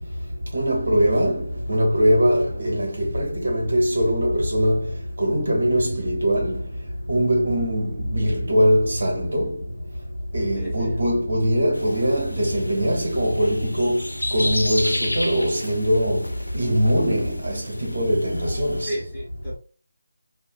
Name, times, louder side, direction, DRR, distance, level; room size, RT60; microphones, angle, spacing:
voice 1, 0.5-4.9 5.2-6.6 7.1-9.6 10.3-14.0 14.3-16.3 16.5-18.9, equal, 65° right, 0.8 m, -21 dB
voice 2, 10.5-11.0 18.8-19.6, right 1 dB, 5° left, 1.2 m, -33 dB
sound 1, 11.7-18.9, left 1 dB, 85° left, 0.4 m, -33 dB
2.7 x 2.1 x 2.2 m
figure-of-eight pair, 155°, 0 cm